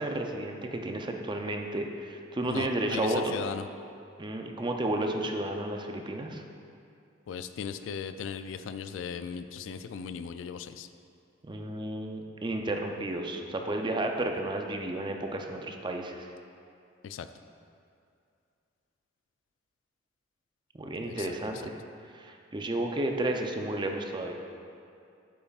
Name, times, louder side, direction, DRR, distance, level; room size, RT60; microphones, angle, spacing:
voice 1, 0.0-3.4 4.2-6.4 11.4-16.3 20.7-21.7 22.1-24.3, right 1 dB, 25° right, 3 dB, 0.5 m, -32 dB
voice 2, 2.4-3.6 7.3-10.9 17.0-17.3 21.0-21.3, left 6 dB, 75° left, 11 dB, 0.3 m, -37 dB
8.6 x 8.5 x 2.4 m, 2.5 s
head